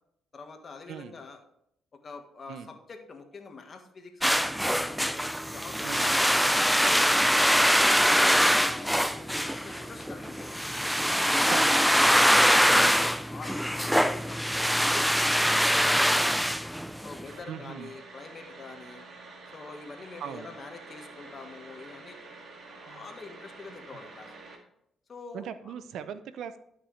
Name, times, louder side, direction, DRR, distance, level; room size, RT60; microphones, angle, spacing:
voice 1, 0.3-1.4 2.0-5.0 5.5-6.5 6.8-10.6 11.4-16.5 17.0-19.1 19.5-22.2 22.7-24.3 25.1-25.4, left 4 dB, 40° left, 5 dB, 1.6 m, -45 dB
voice 2, 0.9-1.2 2.5-2.7 5.8-6.1 11.5-12.9 17.4-17.9 20.2-20.5 22.9-23.1 23.7-23.8 25.3-26.6, right 8 dB, 75° right, 12 dB, 0.6 m, -40 dB
sound 1, 4.2-17.2, equal, ahead, 0.4 m, -23 dB
sound 2, 17.2-24.6, right 3 dB, 50° right, 2.1 m, -48 dB
12.5 x 6.0 x 3.3 m, 0.74 s
cardioid pair, 90°, 0 cm